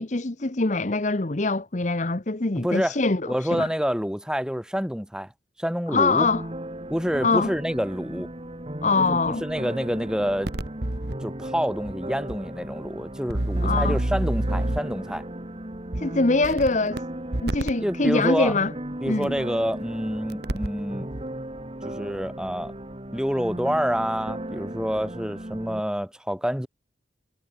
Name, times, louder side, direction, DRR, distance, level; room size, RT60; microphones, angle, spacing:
voice 1, 0.0-3.7 5.9-6.4 7.2-7.5 8.8-9.4 13.6-14.0 16.0-17.0 17.4-18.7 19.1-19.4, left 3 dB, 40° left, 1.0 m, -23 dB
voice 2, 2.6-2.9 3.3-5.3 5.6-6.3 6.9-8.3 9.0-10.5 11.2-15.2 17.8-18.5 19.0-21.1 21.8-22.7 23.1-26.7, equal, 5° right, 3.4 m, -27 dB
sound 1, 6.2-25.8, right 1 dB, 30° right, 1.8 m, -36 dB
sound 2, 10.5-11.1 11.8-11.9 12.3-12.4 13.3-15.0 15.9-16.0 16.4-17.0 17.3-17.7 19.2-19.3 20.3-20.8 21.1-21.2, right 1 dB, 60° right, 1.8 m, -27 dB
head